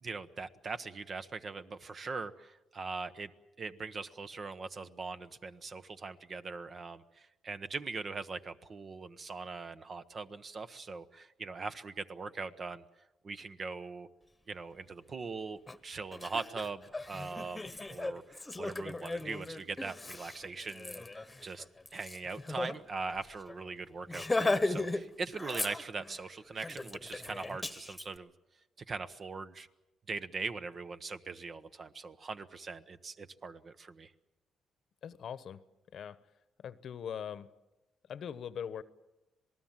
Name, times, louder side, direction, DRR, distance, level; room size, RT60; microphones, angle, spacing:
voice 1, 0.0-3.3 3.6-12.8 13.2-14.1 14.5-21.6 21.9-28.3 28.9-29.7 30.1-34.1, right 4 dB, 40° right, 11 dB, 1.1 m, -41 dB
Laughter, 15.7-15.8 16.1-22.8 23.1-23.2 23.5-23.7 24.1-25.0 25.3-26.1 26.6-28.0, left 2 dB, 15° left, 1.3 m, -36 dB
voice 2, 35.0-35.6 35.9-36.2 36.6-37.5 38.1-38.8, left 8 dB, 60° left, 14 dB, 1.0 m, -41 dB
26.5 x 19.0 x 7.5 m, 0.99 s
cardioid pair, 90°, 0 cm